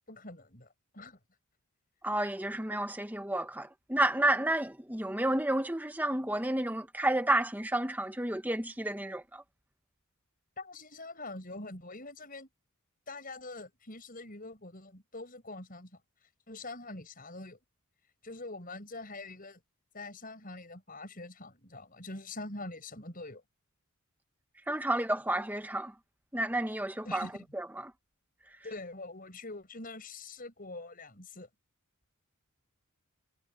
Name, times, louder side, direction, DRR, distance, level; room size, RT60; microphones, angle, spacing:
voice 1, 0.1-0.7 0.9-1.2 10.6-12.5 13.1-15.9 16.5-17.6 18.2-19.6 19.9-23.4 27.0-27.4 28.6-31.5, left 2 dB, 40° left, 6.8 m, -44 dB
voice 2, 2.0-9.4 24.7-25.9 26.3-27.9, right 1 dB, 10° right, 1.3 m, -31 dB
head